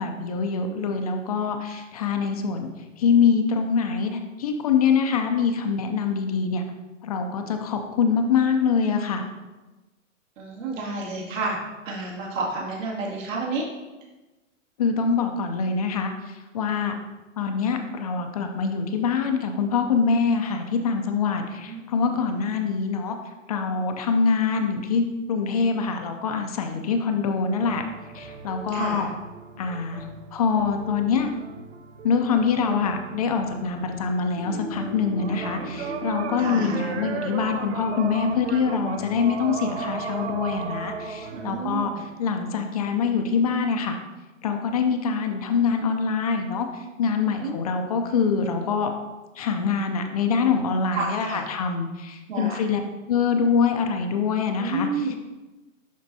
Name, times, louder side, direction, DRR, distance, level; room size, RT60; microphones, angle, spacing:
voice 1, 0.0-2.7 3.0-6.6 7.0-9.2 14.8-16.1 16.5-16.9 17.4-23.2 23.5-27.8 28.1-29.1 29.6-30.1 30.3-31.3 32.0-44.0 44.4-46.7 47.0-48.9 49.4-52.8 53.1-55.3, left 5 dB, 30° left, 5 dB, 0.4 m, -24 dB
voice 2, 10.4-11.6 11.9-13.6 21.7-21.8 22.1-22.2 28.7-29.0 36.4-36.8 41.3-42.0 47.4-47.6 50.9-51.4 52.3-52.6 54.6-55.3, right 3 dB, 70° right, -4 dB, 2.4 m, -30 dB
sound 1, 27.6-41.9, right 5 dB, 55° right, 0.8 m, -36 dB
sound 2, 34.3-41.9, equal, 20° right, 0.9 m, -41 dB
11.0 x 4.5 x 2.7 m, 1.1 s
hypercardioid pair, 160°, 40 cm